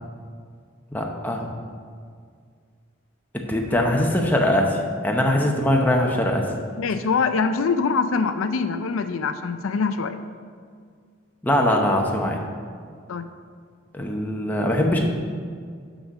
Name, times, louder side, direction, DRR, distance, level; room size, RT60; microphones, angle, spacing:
voice 1, 0.9-1.5 3.5-6.4 11.4-12.4 13.9-15.0, left 1 dB, 10° left, 0 dB, 0.8 m, -21 dB
voice 2, 6.8-10.2 13.1-13.2, left 5 dB, 75° left, 9 dB, 0.4 m, -24 dB
6.3 x 6.2 x 6.4 m, 2.1 s
head